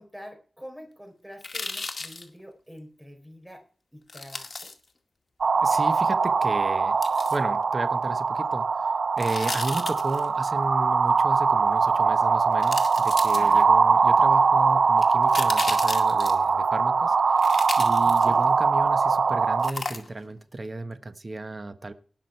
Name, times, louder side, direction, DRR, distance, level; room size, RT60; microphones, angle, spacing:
voice 1, 0.0-3.7 3.9-4.7 9.7-9.8 13.3-13.7 18.0-18.5, equal, 5° right, 4 dB, 4.4 m, -45 dB
sound 1, 1.4-2.2 4.1-4.7 7.0-7.4 9.2-10.2 11.9-12.0 12.6-13.8 15.0-16.5 17.4-18.5 19.6-20.3 20.6-20.7, left 3 dB, 50° left, 2.1 m, -34 dB
sound 2, 5.4-19.7, right 5 dB, 70° right, 0.5 m, -22 dB
voice 2, 5.6-7.0 7.3-8.9 9.2-21.9, right 2 dB, 40° right, 9 dB, 1.3 m, -34 dB
18.5 x 6.3 x 4.6 m, 0.40 s
wide cardioid pair, 75°, 0 cm